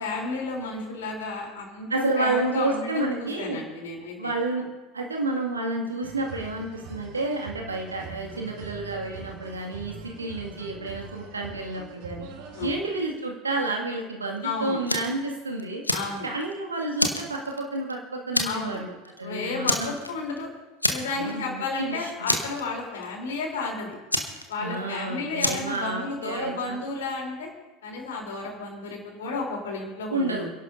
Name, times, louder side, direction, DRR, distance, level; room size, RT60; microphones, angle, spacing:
voice 1, 0.0-1.9 2.2-4.3 12.5-12.8 14.4-14.8 15.9-16.3 18.4-18.8 19.2-20.5 20.9-24.0 24.5-27.5 27.8-30.3, left 3 dB, 70° left, 0 dB, 3.5 m, -32 dB
voice 2, 1.9-3.6 4.1-4.6 4.9-12.3 12.6-15.8 16.2-18.9 19.2-19.9 21.1-22.1 24.6-26.8 30.1-30.5, right 2 dB, 80° right, 0 dB, 2.0 m, -30 dB
sound 1, 6.0-12.8, right 4 dB, 55° right, 1.9 m, -43 dB
Fire, 14.9-15.2 15.6-16.5 17.0-17.9 18.3-18.8 19.0-19.2 19.6-20.4 20.8-21.4 21.7-21.8 22.3-23.1 24.1-24.9 25.4-25.8, left 1 dB, 90° left, 1.1 m, -27 dB
28.5 x 11.5 x 2.7 m, 1.1 s
figure-of-eight pair, 75°, 0 cm